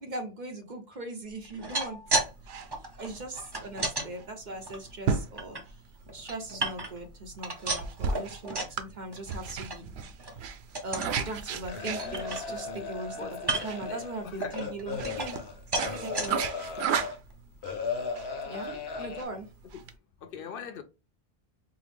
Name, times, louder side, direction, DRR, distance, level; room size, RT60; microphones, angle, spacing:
voice 1, 0.0-2.0 3.0-5.6 6.1-9.8 10.8-13.2 13.6-15.4 15.8-16.4 18.4-18.7 19.0-19.5, right 2 dB, 50° right, 0.9 m, -39 dB
sound 1, 1.4-2.3 2.6-4.1 4.6-5.6 6.1-7.1 7.4-8.8 9.1-9.4 9.7-9.8 10.2-10.4 10.7-11.1 11.6-11.7 12.0-12.8 13.4-13.9 14.4-15.5 15.7-16.3 16.9-17.0 17.3-17.4, right 2 dB, 25° right, 0.7 m, -33 dB
voice 2, 1.9-2.2 11.0-14.6 18.5-19.1 19.7-19.8 20.2-20.8, left 6 dB, 65° left, 0.7 m, -44 dB
sound 2, 2.1-19.9, right 6 dB, 85° right, 0.8 m, -36 dB
sound 3, 11.7-17.2 17.6-19.2, left 5 dB, 85° left, 1.0 m, -36 dB
4.5 x 2.0 x 3.4 m
omnidirectional pair, 1.0 m